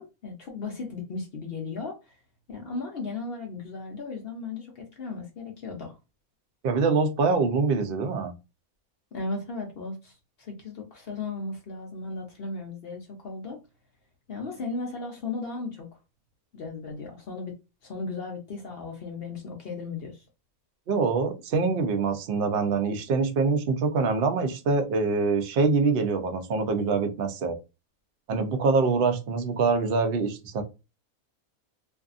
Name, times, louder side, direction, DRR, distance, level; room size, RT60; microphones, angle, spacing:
voice 1, 0.0-2.0 2.5-6.0 9.1-13.6 14.3-15.9 16.5-17.6 17.8-20.2, left 3 dB, 55° left, 0.7 m, -36 dB
voice 2, 6.6-8.3 20.9-27.6 28.3-30.6, right 4 dB, 60° right, 0.6 m, -24 dB
2.6 x 2.5 x 2.4 m
omnidirectional pair, 1.5 m